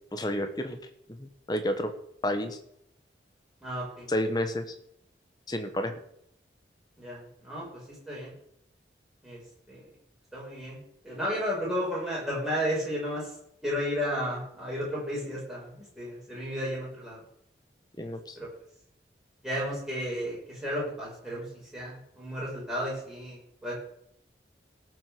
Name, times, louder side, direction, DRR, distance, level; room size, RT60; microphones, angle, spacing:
voice 1, 0.1-0.8 1.2-1.9 2.2-2.6 4.1-4.6 5.5-5.9 18.0-18.4, left 1 dB, 20° left, 7 dB, 1.3 m, -30 dB
voice 2, 3.6-4.1 7.0-8.3 9.2-9.4 9.7-9.9 10.3-13.3 13.6-17.2 18.0-18.5 19.4-23.8, equal, ahead, -6 dB, 6.7 m, -33 dB
17.5 x 6.4 x 6.8 m, 0.73 s
head